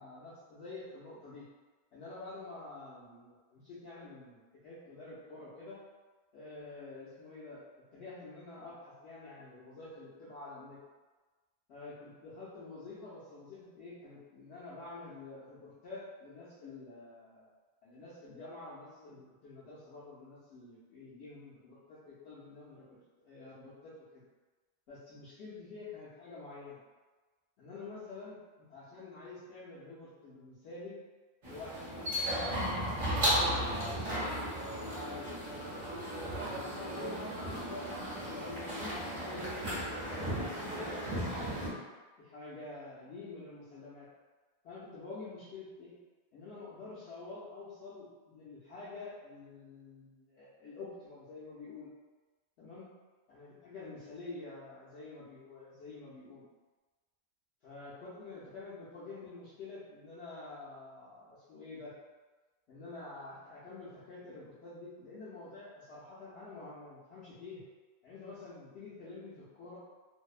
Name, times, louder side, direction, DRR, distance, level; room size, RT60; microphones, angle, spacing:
voice 1, 0.0-1.4 1.9-5.8 6.3-7.6 7.9-10.8 11.7-17.5 17.8-22.8 23.2-24.2 24.9-26.8 27.6-31.0 31.4-32.2 32.7-35.3 36.2-40.4 40.6-41.8 42.2-44.1 44.6-45.9 46.3-51.9 52.6-52.9 53.3-56.4 57.6-61.9 62.7-67.6 68.0-69.8, left 3 dB, 75° left, -10 dB, 0.9 m, -48 dB
sound 1, 31.4-41.7, equal, 50° right, 0.9 m, -35 dB
2.6 x 2.0 x 2.3 m, 1.3 s
omnidirectional pair, 1.1 m